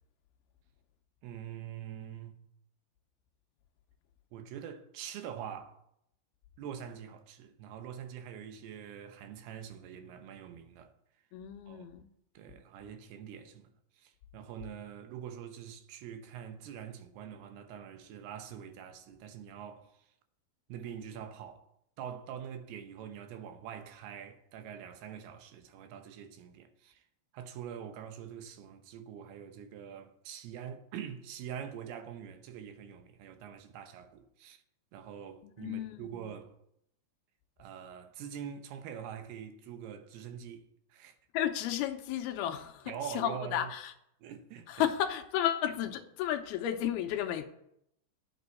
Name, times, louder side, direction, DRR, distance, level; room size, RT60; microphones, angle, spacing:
voice 1, 1.2-2.4 4.3-5.8 6.6-10.9 11.7-11.9 12.3-20.1 20.7-21.6 22.0-27.0 27.3-34.6 34.9-36.5 37.6-41.2 42.9-43.7 44.2-44.9, right 8 dB, 75° right, 2.8 m, -44 dB
voice 2, 11.3-12.1 35.6-36.3 41.3-43.9 44.7-47.5, left 11 dB, 80° left, 2.5 m, -33 dB
9.1 x 7.0 x 8.2 m
omnidirectional pair, 4.9 m